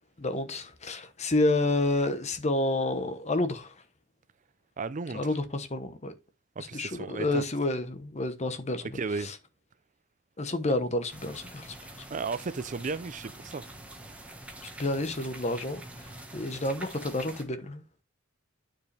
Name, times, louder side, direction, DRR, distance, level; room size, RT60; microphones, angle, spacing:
voice 1, 0.2-3.7 5.1-6.1 6.6-8.8 10.4-11.7 14.8-15.8 16.3-17.8, left 2 dB, 35° left, 1.0 m, -29 dB
voice 2, 4.8-5.4 6.6-7.4 8.8-9.3 12.1-13.6, right 4 dB, 40° right, 0.5 m, -34 dB
sound 1, 11.1-17.4, right 1 dB, 5° right, 1.3 m, -46 dB
9.3 x 5.0 x 3.3 m
head